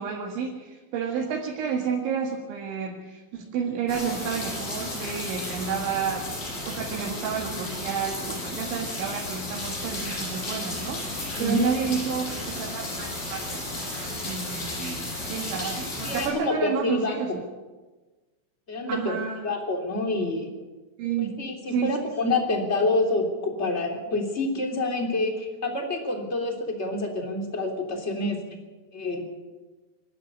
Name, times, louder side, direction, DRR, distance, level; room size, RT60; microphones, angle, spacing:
voice 1, 0.0-6.2 6.6-13.7 14.2-17.4 18.9-19.5 21.0-21.4 21.7-22.0 22.4-22.5, right 6 dB, 75° right, -1 dB, 4.3 m, -30 dB
sound 1, 3.9-16.3, left 2 dB, 45° left, 9.7 m, -33 dB
voice 2, 11.4-11.7 16.0-17.2 18.7-20.5 21.2-28.4 28.9-29.3, left 2 dB, 15° left, 3 dB, 2.6 m, -27 dB
24.5 x 12.5 x 9.9 m, 1.2 s
omnidirectional pair, 5.4 m